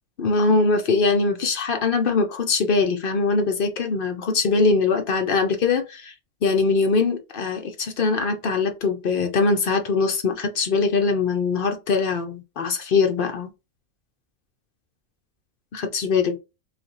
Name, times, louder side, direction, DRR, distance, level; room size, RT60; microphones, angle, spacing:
voice 1, 0.2-6.1 6.4-13.5 15.7-16.4, left 4 dB, 60° left, 0.6 m, -22 dB
3.2 x 2.5 x 4.0 m
omnidirectional pair, 1.6 m